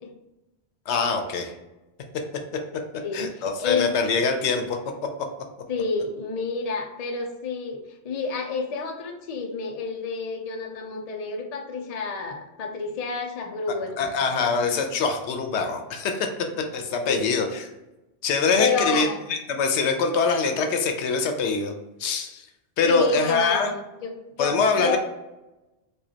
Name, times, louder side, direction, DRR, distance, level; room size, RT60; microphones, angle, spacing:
voice 1, 0.9-1.5 3.1-4.8 14.0-16.3 16.7-17.7 18.2-21.7 22.0-22.5 22.8-23.7 24.4-25.0, left 4 dB, 90° left, 5 dB, 0.9 m, -24 dB
voice 2, 2.9-4.2 5.7-14.1 14.4-14.5 17.1-17.3 18.6-19.2 22.8-25.0, left 4 dB, 45° left, 3 dB, 0.6 m, -29 dB
4.9 x 2.4 x 2.8 m, 1.0 s
omnidirectional pair, 1.1 m